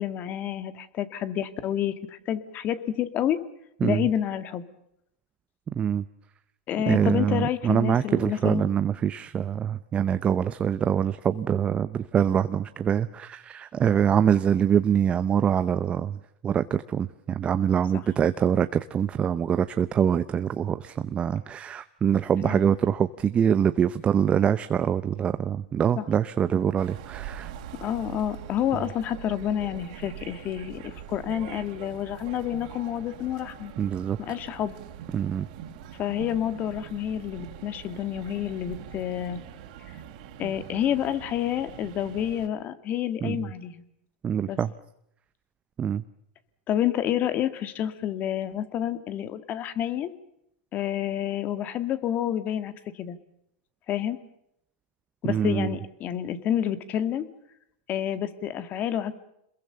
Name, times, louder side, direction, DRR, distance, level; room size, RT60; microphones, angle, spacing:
voice 1, 0.0-3.4 3.8-4.6 6.7-8.7 17.9-18.0 22.4-22.7 26.0-26.1 27.8-33.7 34.2-34.7 36.0-39.4 40.4-43.8 44.4-44.6 46.7-50.1 50.7-53.2 53.9-54.2 55.2-57.3 57.9-59.1, left 10 dB, 35° left, 12 dB, 2.1 m, -29 dB
voice 2, 6.9-16.2 16.4-27.5 33.8-34.2 35.1-35.5 43.2-43.4 44.2-44.7 45.8-46.0 55.2-55.7, right 8 dB, 25° right, 12 dB, 0.8 m, -24 dB
sound 1, 26.8-42.5, right 10 dB, 60° right, 3.6 m, -43 dB
27.0 x 22.0 x 6.8 m, 0.77 s
hypercardioid pair, 120°, 5 cm